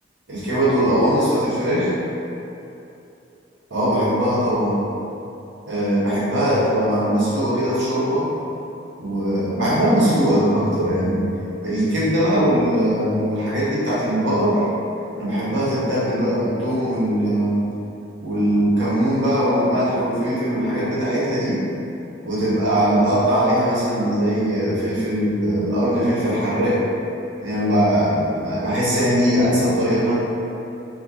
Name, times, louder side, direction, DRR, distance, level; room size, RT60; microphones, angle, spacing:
voice 1, 0.3-1.9 3.7-4.8 5.6-8.3 9.0-11.2 11.6-14.6 15.2-17.6 18.2-21.6 22.2-26.8 27.4-30.1, equal, 80° right, -9 dB, 1.1 m, -20 dB
2.8 x 2.3 x 4.0 m, 2.8 s
head